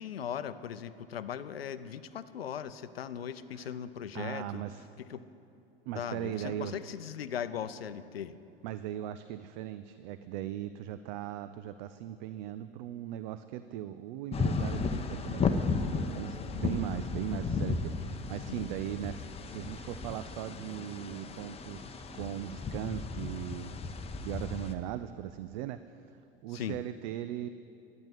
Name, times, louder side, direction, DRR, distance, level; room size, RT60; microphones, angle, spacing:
voice 1, 0.0-4.6 5.0-5.3 6.0-8.4 18.5-18.7 26.5-26.8, left 9 dB, 75° left, 14 dB, 0.6 m, -39 dB
voice 2, 4.1-4.8 5.9-6.8 8.6-15.7 16.1-25.8 26.1-27.5, right 12 dB, 50° right, 12 dB, 0.5 m, -39 dB
sound 1, 14.3-24.7, left 4 dB, 20° left, 0.9 m, -34 dB
12.0 x 9.4 x 8.1 m, 2.7 s
figure-of-eight pair, 80°, 30 cm